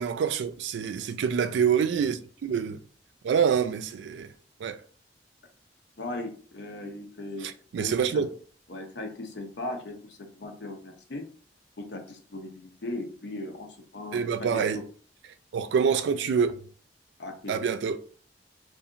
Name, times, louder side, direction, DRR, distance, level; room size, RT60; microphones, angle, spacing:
voice 1, 0.0-2.8 3.2-4.3 4.6-4.8 7.4-8.3 14.1-14.8 15.5-16.6 17.5-18.0, right 7 dB, 90° right, 0.3 m, -26 dB
voice 2, 6.0-7.5 7.8-7.9 8.1-8.2 8.7-11.2 11.9-13.7 13.9-14.8 17.2-17.5, left 2 dB, 85° left, 0.6 m, -38 dB
2.8 x 2.4 x 2.5 m
head